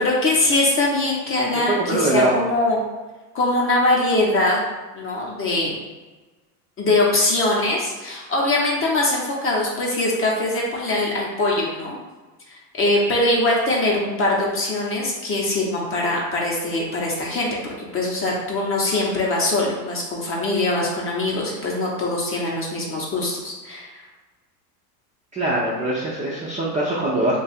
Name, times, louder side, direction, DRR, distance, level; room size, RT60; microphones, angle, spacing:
voice 1, 0.0-2.8 3.3-4.6 4.9-5.8 6.8-12.0 12.5-17.5 17.9-23.9, left 2 dB, 25° left, -2 dB, 0.8 m, -22 dB
voice 2, 1.5-2.4 25.3-27.4, right 1 dB, 15° right, -7 dB, 0.5 m, -22 dB
2.8 x 2.4 x 4.1 m, 1.2 s
supercardioid pair, 120°, 50 cm